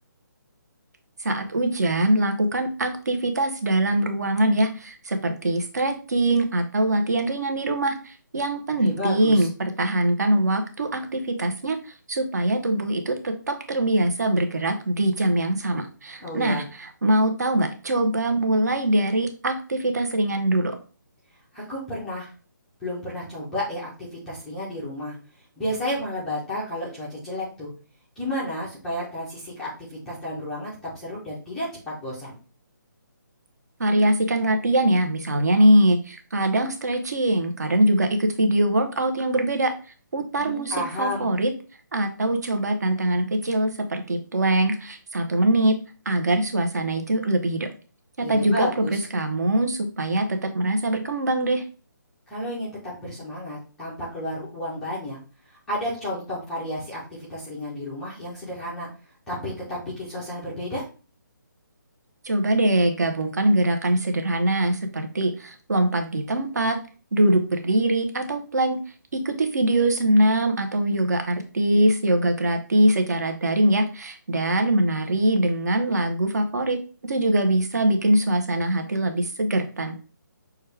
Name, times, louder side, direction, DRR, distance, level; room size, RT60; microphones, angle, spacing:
voice 1, 1.2-20.8 33.8-39.7 40.1-41.5 41.9-45.8 46.0-47.7 48.2-51.6 62.2-66.8 67.1-68.8 69.1-79.9, right 1 dB, 55° right, 5 dB, 1.0 m, -23 dB
voice 2, 8.8-9.5 16.2-16.6 21.5-22.3 22.8-25.2 25.6-27.7 28.2-31.7 32.0-32.4 40.4-41.3 48.2-49.0 52.3-55.2 55.7-58.9 59.3-60.8, left 1 dB, ahead, -9 dB, 0.5 m, -32 dB
6.2 x 2.3 x 3.3 m, 0.37 s
hypercardioid pair, 175°, 11 cm